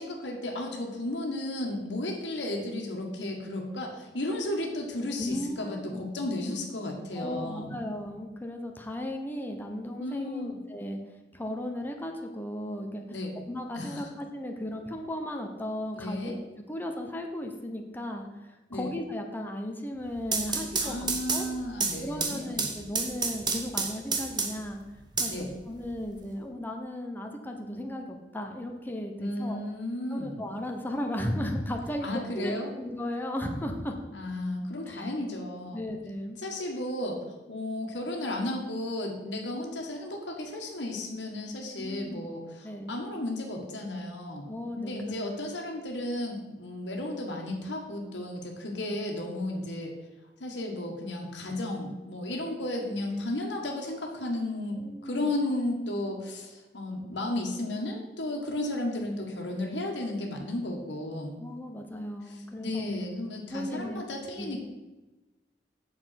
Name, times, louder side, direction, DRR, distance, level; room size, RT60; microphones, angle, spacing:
voice 1, 0.0-7.8 10.0-10.6 13.1-13.4 13.7-14.1 15.9-16.4 18.7-18.9 20.8-22.7 25.2-25.5 29.2-30.4 32.0-32.7 34.1-35.8 36.4-44.5 44.8-49.9 50.4-61.4 62.3-64.6, left 1 dB, 85° left, 1 dB, 1.7 m, -34 dB
voice 2, 5.2-6.0 7.1-11.0 11.3-13.0 13.5-16.4 16.7-18.3 18.7-21.5 22.0-24.8 25.2-29.6 30.1-33.9 34.9-35.1 35.7-36.4 41.8-42.2 42.6-43.0 44.5-45.1 54.8-55.3 61.4-62.9 63.5-64.0 64.4-64.6, left 1 dB, 10° left, 3 dB, 1.0 m, -36 dB
sound 1, 20.1-24.7 25.2-26.1, right 4 dB, 25° right, 1.2 m, -30 dB
8.3 x 7.1 x 5.9 m, 1.1 s
head